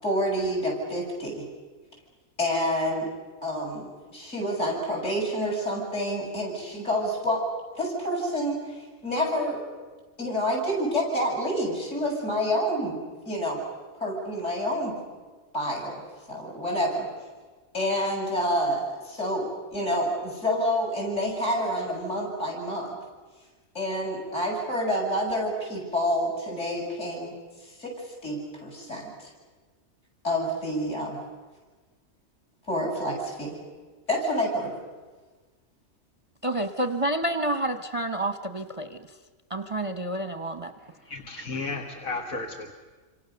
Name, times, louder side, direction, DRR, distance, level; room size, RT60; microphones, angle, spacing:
voice 1, 0.0-1.4 2.4-3.1 3.4-7.4 7.7-9.6 10.2-13.0 13.2-13.6 14.0-15.0 15.5-16.0 16.3-17.1 17.7-23.0 23.7-29.3 30.2-31.2 32.7-33.6 34.1-34.7, equal, 60° left, 0 dB, 8.4 m, -28 dB
voice 2, 36.4-39.0 39.5-40.7, right 1 dB, 30° right, 8 dB, 0.8 m, -29 dB
voice 3, 41.1-42.7, left 3 dB, 80° left, 2 dB, 2.3 m, -33 dB
28.5 x 26.0 x 6.9 m, 1.4 s
omnidirectional pair, 1.4 m